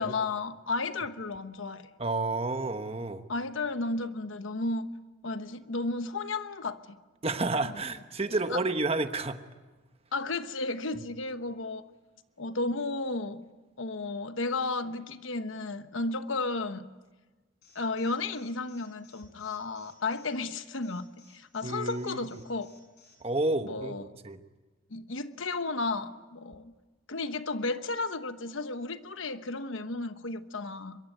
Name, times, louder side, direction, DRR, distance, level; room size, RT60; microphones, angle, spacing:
voice 1, 0.0-1.9 3.3-4.9 5.2-7.0 8.5-8.6 10.1-11.9 12.4-13.4 13.8-16.9 17.7-22.7 23.6-24.0 24.9-26.7 27.1-31.0, left 3 dB, 75° left, 1.1 m, -33 dB
voice 2, 2.0-3.2 7.2-9.4 21.6-22.4 23.2-24.4, right 2 dB, 30° right, 1.2 m, -30 dB
Alarm, 17.6-23.2, left 5 dB, 50° left, 6.7 m, -59 dB
24.0 x 22.5 x 9.2 m
head